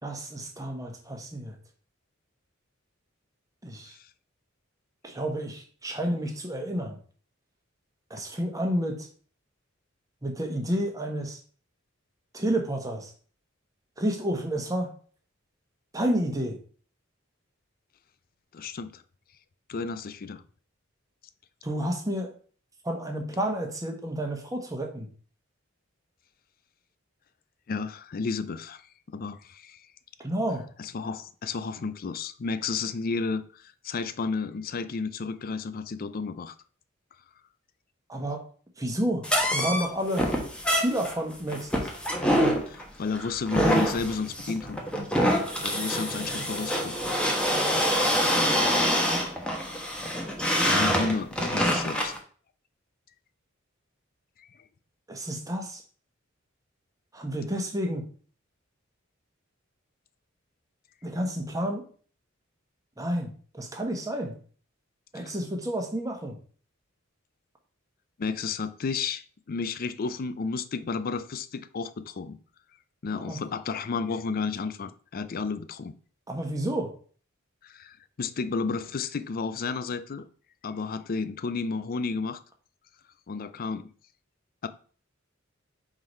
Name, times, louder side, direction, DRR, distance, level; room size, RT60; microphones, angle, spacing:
voice 1, 0.0-1.6 3.6-3.9 5.0-7.0 8.1-9.1 10.2-11.4 12.3-13.1 14.0-14.9 15.9-16.6 21.6-22.3 22.8-25.1 30.2-30.6 38.1-38.4 38.8-39.2 39.5-40.3 40.7-41.9 55.1-55.8 57.1-58.0 61.0-61.8 63.0-64.3 65.1-66.4 73.3-73.4 76.3-76.9, right 1 dB, 15° right, 1.1 m, -30 dB
voice 2, 18.5-19.0 19.7-20.4 27.7-28.8 29.1-29.8 30.8-36.5 42.7-44.8 45.6-47.0 50.6-52.1 54.4-54.5 68.2-72.4 73.0-75.9 77.6-80.2 80.6-82.4 83.3-83.9 84.6-84.7, left 4 dB, 45° left, 0.4 m, -32 dB
sound 1, 39.2-52.2, equal, 5° left, 1.0 m, -26 dB
4.7 x 3.8 x 5.3 m
head